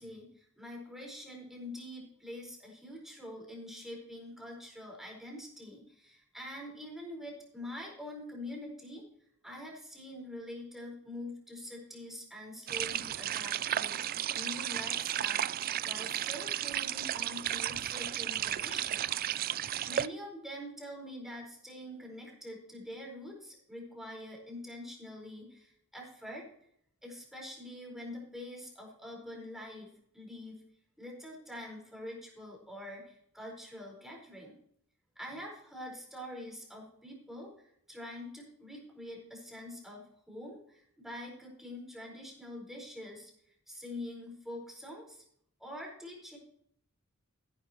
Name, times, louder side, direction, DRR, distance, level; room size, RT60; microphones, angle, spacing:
voice 1, 0.0-9.0 9.4-15.5 15.8-19.1 19.4-26.5 27.0-30.6 31.0-34.5 35.2-43.3 43.7-45.2 45.6-46.4, left 1 dB, ahead, -2 dB, 4.6 m, -45 dB
sound 1, 12.7-20.1, right 11 dB, 40° right, 0.3 m, -34 dB
16.0 x 10.5 x 3.0 m, 0.68 s
head